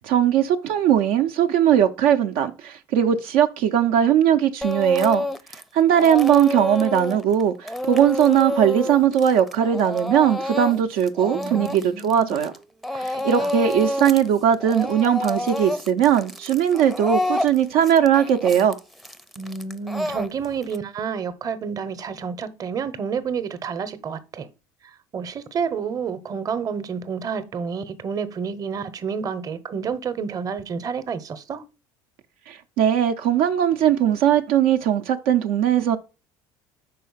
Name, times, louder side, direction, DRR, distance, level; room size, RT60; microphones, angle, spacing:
voice 1, 0.0-5.3 5.7-12.5 13.0-18.8 32.5-36.0, right 9 dB, 75° right, 0.6 m, -19 dB
Speech / Crying sobbing, 4.6-5.6 5.9-12.6 12.8-14.3 14.5-20.8, left 1 dB, ahead, 0.5 m, -28 dB
voice 2, 11.3-12.4 12.9-13.1 13.4-13.5 19.4-24.5 24.8-31.6, right 6 dB, 40° right, 0.9 m, -30 dB
5.5 x 4.3 x 5.6 m
supercardioid pair, 100°, 10 cm